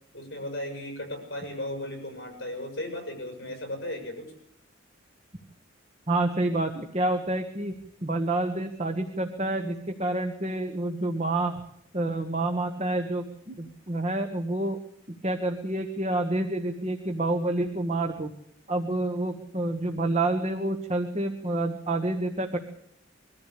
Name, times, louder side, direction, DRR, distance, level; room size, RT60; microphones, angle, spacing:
voice 1, 0.1-4.3, left 1 dB, 55° left, 4 dB, 6.9 m, -36 dB
voice 2, 6.1-11.6 11.9-14.8 15.2-18.3 18.7-22.6, right 2 dB, 35° right, 5 dB, 1.4 m, -28 dB
22.5 x 14.0 x 8.5 m, 0.73 s
head